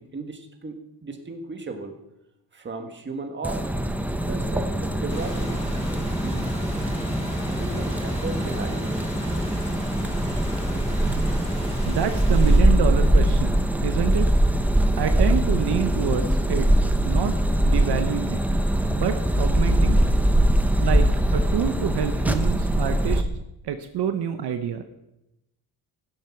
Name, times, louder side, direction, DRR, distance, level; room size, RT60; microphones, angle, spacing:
voice 1, 0.0-2.0 2.5-3.7 4.0-5.6 6.1-6.8 7.5-8.9, right 3 dB, 25° right, 5 dB, 1.6 m, -36 dB
sound 1, 3.4-23.2, right 1 dB, 5° right, 0.8 m, -22 dB
sound 2, 5.1-12.6, equal, 15° left, 3.9 m, -38 dB
voice 2, 11.9-14.3 15.0-16.7 17.0-17.3 17.6-18.4 18.9-20.0 20.8-23.3 23.6-24.8, right 8 dB, 70° right, 8 dB, 0.9 m, -27 dB
16.0 x 7.9 x 5.8 m, 0.93 s
cardioid pair, 125°, 41 cm